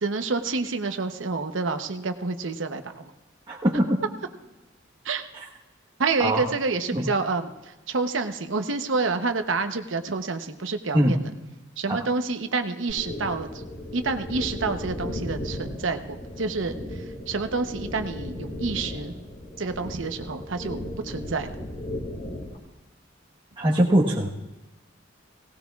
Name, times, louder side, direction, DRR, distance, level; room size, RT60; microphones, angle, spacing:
voice 1, 0.0-3.1 5.0-5.2 6.0-7.5 7.9-11.2 11.8-13.6 13.9-16.8 17.3-19.1 19.6-21.5, right 4 dB, 80° right, 7 dB, 0.9 m, -28 dB
voice 2, 3.5-4.0 6.2-6.5 6.9-7.1 10.9-11.2 11.9-12.0 23.6-24.3, right 1 dB, 25° right, -5 dB, 1.3 m, -21 dB
sound 1, 12.9-22.6, left 1 dB, 45° left, 2.5 m, -36 dB
18.0 x 18.0 x 2.4 m, 1.1 s
head